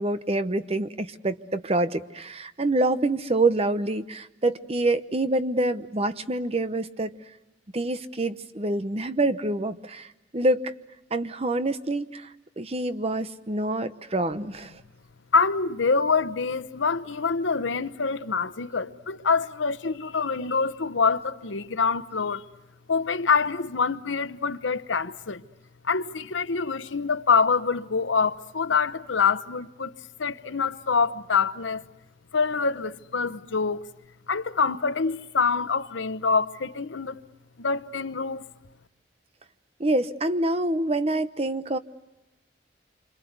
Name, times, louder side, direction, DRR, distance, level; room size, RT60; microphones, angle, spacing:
voice 1, 0.0-7.1 7.7-10.1 10.3-10.7 11.1-14.7 39.8-41.8, right 2 dB, 30° right, 0.9 m, -26 dB
voice 2, 15.3-22.4 22.9-25.4 25.8-29.9 30.2-31.8 32.3-33.9 34.3-37.2 37.6-38.4, left 5 dB, 85° left, 0.9 m, -25 dB
27.5 x 26.0 x 8.1 m
head